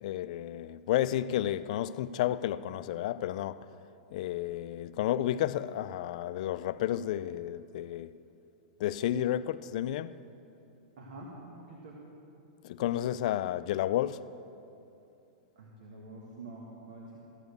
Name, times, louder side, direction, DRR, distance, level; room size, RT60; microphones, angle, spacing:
voice 1, 0.0-3.7 4.1-8.1 8.8-10.2 12.6-14.2, left 12 dB, 60° left, 0.4 m, -31 dB
voice 2, 11.0-12.0 15.6-17.2, right 2 dB, 80° right, 1.7 m, -47 dB
14.0 x 7.1 x 6.6 m
hypercardioid pair, 135°, 4 cm